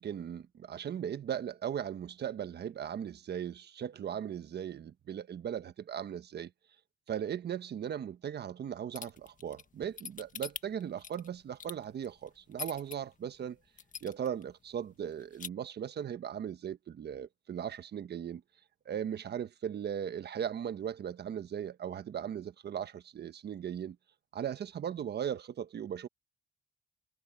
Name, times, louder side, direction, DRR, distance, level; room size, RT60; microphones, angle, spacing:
voice 1, 0.0-6.5 7.1-13.6 14.0-18.4 18.8-24.0 24.3-26.1, right 9 dB, 55° right, 1.3 m, -38 dB
sound 1, 8.9-13.0 13.4-13.5 13.8-14.4 14.7-14.8 15.1-15.5, left 6 dB, 40° left, 1.7 m, -43 dB
cardioid pair, 90°, 20 cm